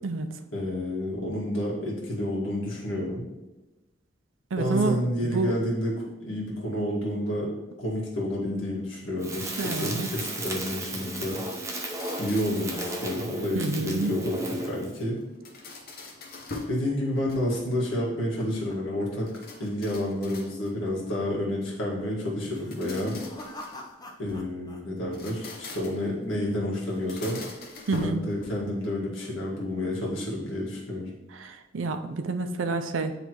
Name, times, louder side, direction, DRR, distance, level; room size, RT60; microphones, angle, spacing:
voice 1, 0.5-3.2 4.6-7.5 7.8-11.4 12.2-15.2 16.7-19.3 19.6-23.1 24.2-27.4 28.0-31.1, left 1 dB, 80° left, -4 dB, 1.8 m, -30 dB
voice 2, 4.5-5.5 9.6-10.1 13.5-14.1 27.9-28.2 31.4-33.1, right 3 dB, 85° right, 8 dB, 0.5 m, -28 dB
Crackle, 9.2-14.9, right 1 dB, 15° right, 0.7 m, -34 dB
sound 1, 11.5-12.8 15.2-16.8 17.2-17.8 19.3-20.9 22.5-24.5 25.0-26.1 26.9-28.8, left 3 dB, 50° left, 0.8 m, -42 dB
sound 2, 16.8-19.3 19.6-20.0 20.3-20.4 21.1-21.5 22.4-24.8 25.1-25.7, left 1 dB, 20° left, 0.6 m, -44 dB
9.4 x 3.3 x 3.0 m, 1.1 s
head